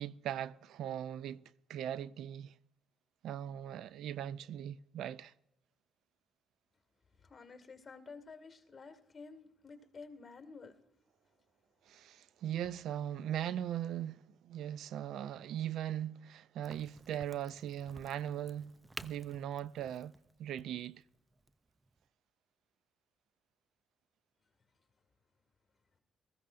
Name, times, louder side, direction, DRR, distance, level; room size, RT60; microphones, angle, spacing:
voice 1, 0.0-1.4 1.7-2.5 3.2-5.3 11.9-18.7 19.0-20.1 20.4-21.0, right 10 dB, 80° right, 0.3 m, -39 dB
voice 2, 7.2-10.7, left 4 dB, 30° left, 2.0 m, -51 dB
Crack, 16.6-22.1, right 2 dB, 15° right, 0.5 m, -53 dB
19.0 x 15.0 x 2.5 m
cardioid pair, 90°, 0 cm